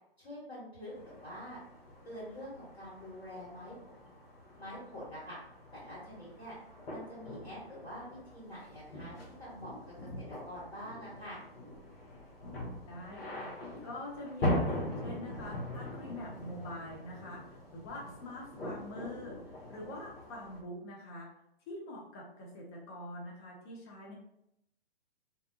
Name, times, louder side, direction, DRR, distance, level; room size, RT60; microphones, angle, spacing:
voice 1, 0.2-1.6 2.0-3.7 4.6-5.4 5.7-6.6 6.9-9.7 10.2-11.4, equal, 85° left, -9 dB, 1.3 m, -46 dB
sound 1, 0.9-20.6, left 1 dB, 65° left, 0.9 m, -41 dB
voice 2, 12.9-21.3 21.7-24.1, left 1 dB, 25° left, -2 dB, 0.5 m, -45 dB
2.7 x 2.2 x 2.6 m, 0.78 s
figure-of-eight pair, 120°, 31 cm